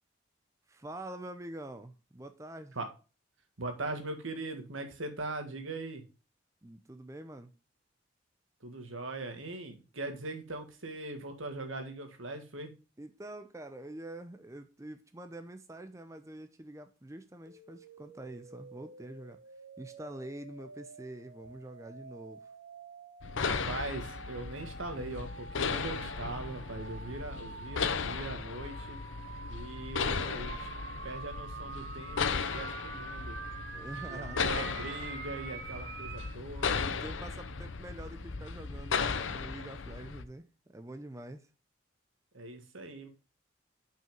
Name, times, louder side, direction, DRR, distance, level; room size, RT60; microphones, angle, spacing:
voice 1, 0.7-2.8 6.6-7.5 13.0-19.4 19.8-22.5 33.7-34.4 36.8-40.5 40.7-41.5, right 1 dB, 15° right, 0.6 m, -46 dB
voice 2, 3.6-6.0 8.6-12.7 23.5-29.0 29.5-30.7 31.0-33.4 34.1-36.8 42.3-43.1, right 2 dB, 90° right, 1.7 m, -40 dB
sound 1, 17.5-36.3, right 4 dB, 60° right, 1.1 m, -47 dB
sound 2, 23.2-40.2, left 5 dB, 80° left, 0.7 m, -36 dB
sound 3, 33.0-38.8, equal, 15° left, 1.9 m, -51 dB
6.1 x 5.6 x 5.2 m
head